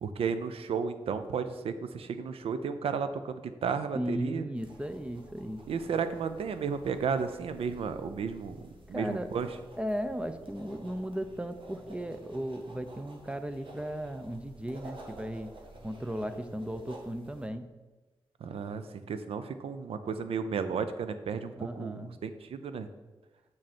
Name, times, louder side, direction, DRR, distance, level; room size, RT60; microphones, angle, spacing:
voice 1, 0.0-4.5 5.7-8.6 8.9-9.5 18.4-22.9, right 6 dB, 85° right, 10 dB, 0.6 m, -33 dB
voice 2, 3.9-5.6 8.9-9.3 9.8-15.5 15.8-17.7 21.6-22.1, equal, 10° right, 10 dB, 0.7 m, -36 dB
sound 1, 4.6-17.5, right 1 dB, 60° right, 1.6 m, -51 dB
7.5 x 6.4 x 4.3 m, 1.2 s
cardioid pair, 65°, 10 cm